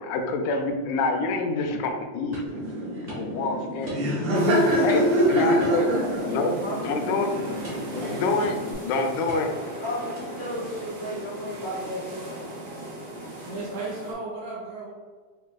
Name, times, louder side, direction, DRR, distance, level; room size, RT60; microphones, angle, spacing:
voice 1, 0.0-4.2 4.8-5.9 6.3-6.5 6.8-7.3 7.9-9.5, left 3 dB, 80° left, 4 dB, 1.9 m, -27 dB
sound 1, 2.3-2.6 3.1-3.3 3.9-4.3 4.7-5.0 5.6-6.4 6.7-6.9 7.6-8.0 8.4-8.8 9.3-9.7 10.1-10.5, equal, 35° right, 0.9 m, -43 dB
Laughter, 2.5-8.7, equal, 90° right, 2.5 m, -26 dB
sound 2, 4.3-14.1, right 1 dB, 55° right, 1.6 m, -38 dB
voice 2, 9.8-12.2, equal, 60° left, -7 dB, 0.9 m, -33 dB
voice 3, 13.4-14.9, right 3 dB, 75° right, -8 dB, 2.2 m, -34 dB
6.6 x 2.6 x 2.3 m, 1.5 s
omnidirectional pair, 3.4 m